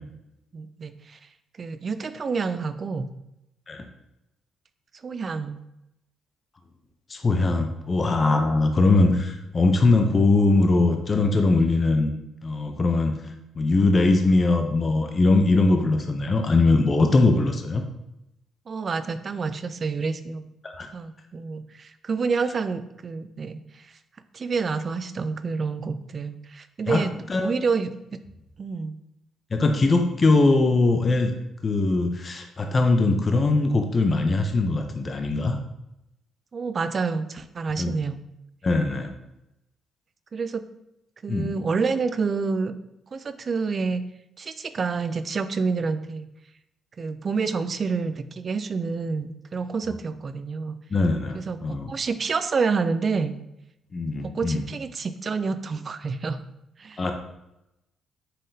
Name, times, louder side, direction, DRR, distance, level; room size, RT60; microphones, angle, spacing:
voice 1, 0.5-1.2 1.6-3.1 5.0-5.6 18.7-20.4 20.9-23.9 24.3-27.1 27.4-27.9 28.6-28.9 36.5-38.2 40.3-40.6 41.2-42.7 43.1-44.0 44.4-46.3 47.0-50.8 51.4-53.3 54.2-56.4 56.8-57.1, right 4 dB, 40° right, 11 dB, 0.4 m, -28 dB
voice 2, 7.1-12.1 12.4-13.1 13.6-17.8 20.6-20.9 26.9-27.0 27.3-27.5 29.5-31.3 31.6-35.6 37.8-37.9 38.6-39.1 41.3-41.5 50.9-51.9 53.9-54.6 57.0-57.1, left 3 dB, 35° left, 5 dB, 0.6 m, -21 dB
5.5 x 3.6 x 2.7 m, 0.86 s
cardioid pair, 90°, 0 cm